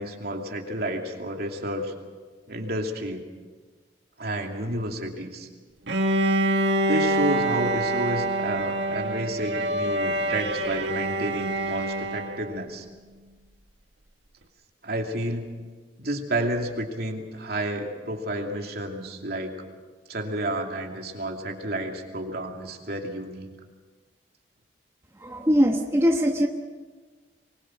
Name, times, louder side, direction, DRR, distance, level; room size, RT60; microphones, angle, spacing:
voice 1, 0.0-1.9 2.5-3.2 4.2-5.5 6.9-12.9 14.8-15.5 16.0-19.5 20.1-23.5, right 1 dB, 60° right, 2 dB, 2.7 m, -30 dB
Bowed string instrument, 5.9-12.6, right 1 dB, 80° right, 1.8 m, -26 dB
voice 2, 25.2-26.5, equal, 15° right, 2 dB, 1.1 m, -21 dB
24.0 x 21.0 x 6.3 m, 1.4 s
head